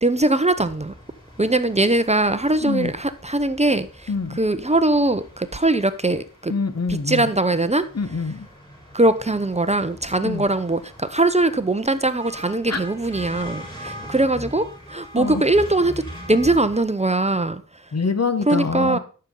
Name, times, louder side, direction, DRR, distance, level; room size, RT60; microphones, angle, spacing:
voice 1, 0.0-0.9 1.4-4.1 4.4-6.5 6.9-7.8 8.9-16.0 16.3-17.6 18.5-19.0, right 2 dB, 20° right, 0.7 m, -21 dB
sound 1, 0.6-16.8, equal, 15° left, 4.8 m, -41 dB
voice 2, 2.6-2.9 4.1-4.4 6.5-7.3 7.9-8.5 10.2-10.4 12.7-12.8 15.2-15.4 17.9-19.0, left 4 dB, 50° left, 1.2 m, -25 dB
12.0 x 6.9 x 3.9 m
cardioid pair, 50°, 33 cm